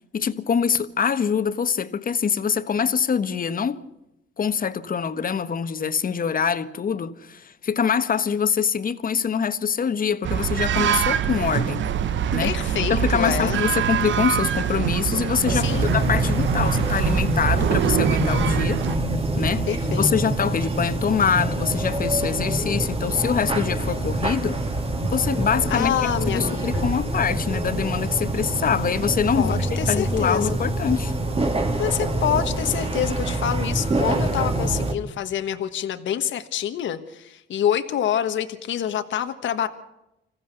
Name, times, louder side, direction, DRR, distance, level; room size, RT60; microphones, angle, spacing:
voice 1, 0.1-3.8 4.4-11.9 12.3-18.8 19.4-19.6 20.0-24.6 25.1-31.1, left 7 dB, 45° left, 1.4 m, -24 dB
sound 1, 10.2-19.0, right 9 dB, 70° right, 1.1 m, -24 dB
voice 2, 12.4-13.6 15.5-15.9 19.7-20.1 25.7-26.9 29.4-30.6 31.8-39.7, left 10 dB, 70° left, 1.4 m, -26 dB
sound 2, 15.5-34.9, right 1 dB, 30° right, 3.1 m, -25 dB
26.0 x 15.5 x 6.9 m
cardioid pair, 90°, 20 cm